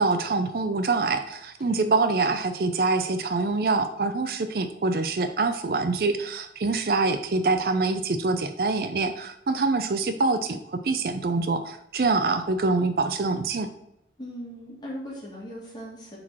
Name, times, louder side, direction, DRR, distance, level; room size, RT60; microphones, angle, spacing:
voice 1, 0.0-13.7, right 3 dB, 55° right, 9 dB, 0.5 m, -25 dB
voice 2, 14.2-16.2, equal, 25° left, -5 dB, 2.2 m, -39 dB
6.2 x 4.6 x 4.2 m, 0.79 s
head